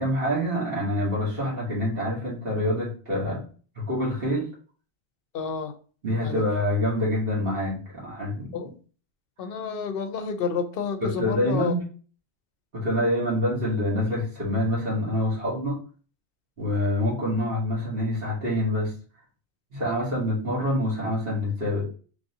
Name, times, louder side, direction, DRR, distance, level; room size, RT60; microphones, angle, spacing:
voice 1, 0.0-3.4 3.8-4.5 6.0-8.5 11.0-11.8 12.7-15.8 16.6-18.9 19.7-21.9, left 1 dB, 55° right, -5 dB, 1.4 m, -26 dB
voice 2, 5.3-5.7 6.2-6.4 8.5-8.7 9.4-11.7, left 6 dB, 60° left, 8 dB, 0.7 m, -30 dB
3.1 x 2.6 x 2.6 m, 0.38 s
omnidirectional pair, 1.2 m